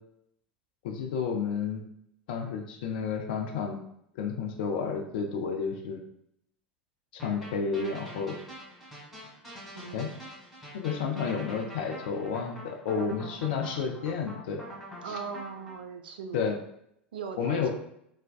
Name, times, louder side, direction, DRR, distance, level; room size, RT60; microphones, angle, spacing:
voice 1, 0.8-1.9 2.3-3.8 4.2-6.0 7.2-8.4 9.9-10.1 10.7-14.6 15.1-15.2 16.3-16.6 17.4-17.7, left 6 dB, 60° left, 3 dB, 0.4 m, -31 dB
sound 1, 7.2-15.8, equal, 5° right, 1.4 m, -45 dB
voice 2, 9.7-10.2 15.0-16.5 17.1-17.7, right 5 dB, 70° right, 6 dB, 0.3 m, -39 dB
3.3 x 2.1 x 2.3 m, 0.75 s
figure-of-eight pair, 75°, 6 cm